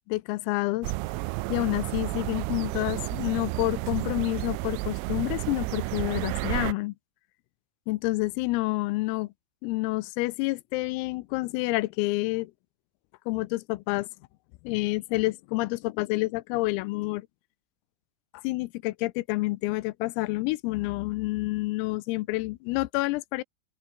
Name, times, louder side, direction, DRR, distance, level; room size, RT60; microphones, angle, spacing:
voice 1, 0.1-0.9 1.5-6.9 7.9-9.3 9.6-12.5 13.3-14.1 14.6-17.3 18.4-23.4, left 21 dB, 90° left, 3.5 m, -28 dB
sound 1, 0.8-6.7, right 23 dB, 85° right, 3.1 m, -31 dB
open air
omnidirectional pair, 5.9 m